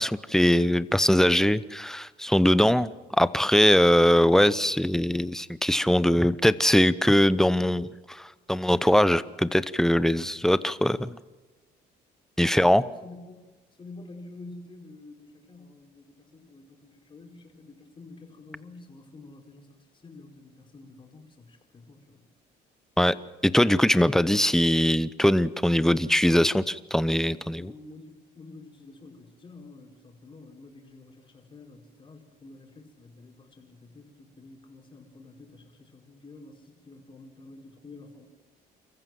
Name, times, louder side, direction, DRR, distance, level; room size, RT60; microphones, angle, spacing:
voice 1, 0.0-2.9 3.2-11.2 12.4-12.8 23.0-23.2 23.4-27.7, equal, 5° left, 16 dB, 0.7 m, -21 dB
voice 2, 12.5-13.4 13.8-19.7 19.9-22.3 27.5-38.2, left 3 dB, 30° left, 2 dB, 4.6 m, -48 dB
29.0 x 14.5 x 7.7 m, 1.2 s
cardioid pair, 110°, 17 cm